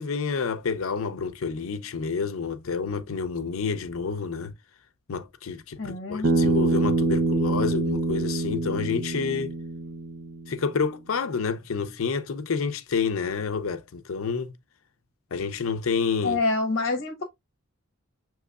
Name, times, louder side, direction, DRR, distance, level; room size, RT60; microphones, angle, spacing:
voice 1, 0.0-4.5 5.1-9.5 10.5-14.5 15.3-16.4, left 5 dB, 75° left, 0.5 m, -29 dB
voice 2, 5.8-6.3 16.2-17.2, left 3 dB, 50° left, 0.9 m, -26 dB
Bass guitar, 6.2-10.6, right 3 dB, 60° right, 0.5 m, -25 dB
6.4 x 3.0 x 2.3 m
head